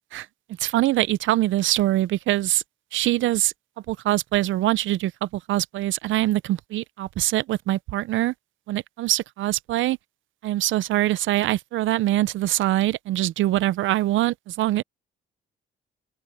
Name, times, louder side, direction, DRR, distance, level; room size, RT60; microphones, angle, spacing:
voice 1, 0.6-2.6 2.9-3.5 3.9-8.3 8.7-10.0 10.4-14.8, right 15 dB, 75° right, 0.6 m, -23 dB
open air
cardioid pair, 90°, 20 cm